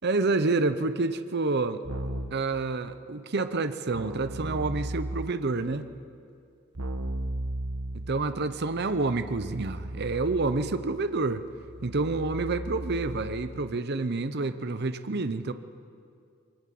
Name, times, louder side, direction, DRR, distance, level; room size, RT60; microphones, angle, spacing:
voice 1, 0.0-1.8 2.3-5.8 8.1-11.4 11.8-15.5, right 3 dB, 50° right, 10 dB, 0.8 m, -28 dB
Keyboard (musical), 1.8-2.5 3.9-5.5 6.7-13.8, right 1 dB, 85° right, 1.2 m, -37 dB
23.0 x 19.5 x 7.7 m, 2.4 s
head